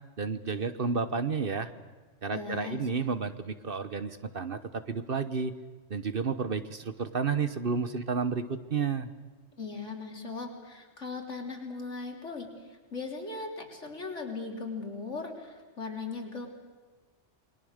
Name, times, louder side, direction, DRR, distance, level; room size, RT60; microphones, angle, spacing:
voice 1, 0.2-1.7 2.2-5.5 5.9-9.1, right 5 dB, 50° right, 11 dB, 1.2 m, -31 dB
voice 2, 2.3-2.8 9.6-16.5, left 4 dB, 70° left, 2 dB, 3.8 m, -38 dB
28.5 x 22.0 x 6.6 m, 1.4 s
omnidirectional pair, 1.3 m